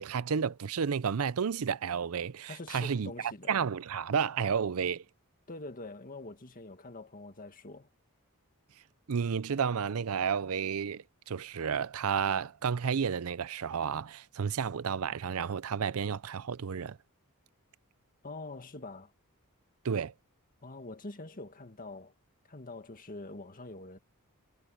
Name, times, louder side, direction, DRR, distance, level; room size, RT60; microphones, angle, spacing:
voice 1, 0.0-3.1 3.5-5.0 9.1-17.0 19.8-20.1, right 6 dB, 70° right, 0.5 m, -31 dB
voice 2, 2.5-3.5 5.5-7.9 18.2-19.1 20.6-22.1 22.5-24.0, left 2 dB, 40° left, 1.9 m, -45 dB
head